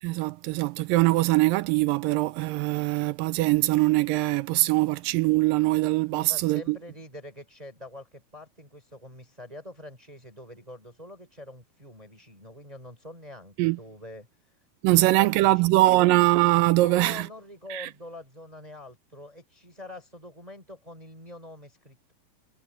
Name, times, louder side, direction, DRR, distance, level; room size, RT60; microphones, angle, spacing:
voice 1, 0.0-6.8 13.6-13.8 14.8-17.3 17.7-17.9, right 19 dB, 80° right, 2.0 m, -22 dB
voice 2, 6.1-14.3 14.8-16.1 16.8-22.1, left 1 dB, 10° right, 3.9 m, -45 dB
omnidirectional pair, 4.4 m